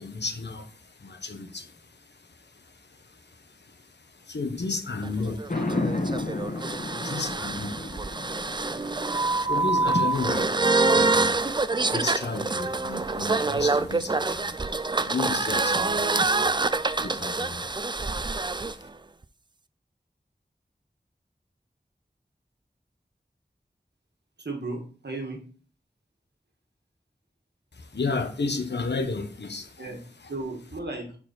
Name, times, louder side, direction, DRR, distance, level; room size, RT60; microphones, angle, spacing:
voice 1, 0.0-18.7 27.7-29.9, left 3 dB, 85° left, 1.0 m, -35 dB
sound 1, 5.0-18.7, right 3 dB, 25° right, 0.4 m, -26 dB
sound 2, 5.5-10.8, left 2 dB, 50° left, 1.3 m, -32 dB
voice 2, 24.4-25.5 29.8-30.0 30.3-31.2, right 2 dB, 85° right, 1.5 m, -35 dB
6.8 x 4.2 x 4.1 m
wide cardioid pair, 55°, 17 cm